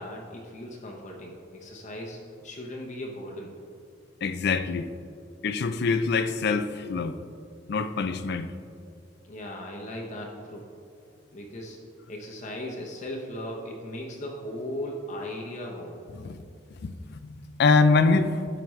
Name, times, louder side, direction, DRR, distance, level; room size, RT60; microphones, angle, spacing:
voice 1, 0.0-3.5 9.2-10.7 11.3-11.8 12.1-16.0, left 1 dB, 40° left, -1 dB, 0.8 m, -37 dB
voice 2, 4.2-4.9 5.4-7.2 7.7-8.5 16.1-16.4 16.8-16.9 17.2-18.5, left 4 dB, 55° left, 10 dB, 0.4 m, -24 dB
11.5 x 5.0 x 3.2 m, 2.4 s
head